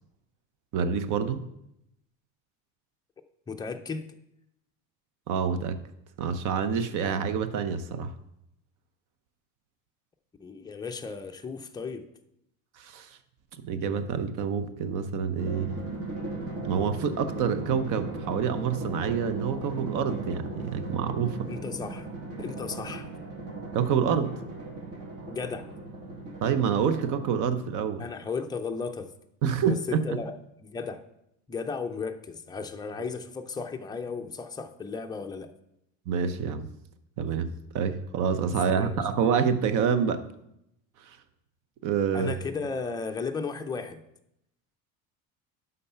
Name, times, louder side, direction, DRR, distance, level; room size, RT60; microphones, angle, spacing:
voice 1, 0.7-1.4 5.3-5.8 6.2-8.1 12.8-13.1 13.6-15.7 16.6-21.5 23.7-24.3 26.4-28.0 29.4-30.2 36.1-36.7 37.2-37.5 37.7-40.2 41.0-41.2 41.8-42.3, right 7 dB, 60° right, 11 dB, 0.8 m, -27 dB
voice 2, 3.5-4.1 10.4-12.0 21.5-22.1 22.4-23.1 25.3-25.7 28.0-29.1 29.6-30.3 30.6-31.0 31.5-35.5 38.6-39.1 42.1-44.0, left 4 dB, 10° left, 5 dB, 0.4 m, -35 dB
Drum, 15.4-27.7, right 2 dB, 40° right, 1.9 m, -37 dB
11.0 x 4.0 x 5.6 m, 0.82 s
cardioid pair, 135°, 35 cm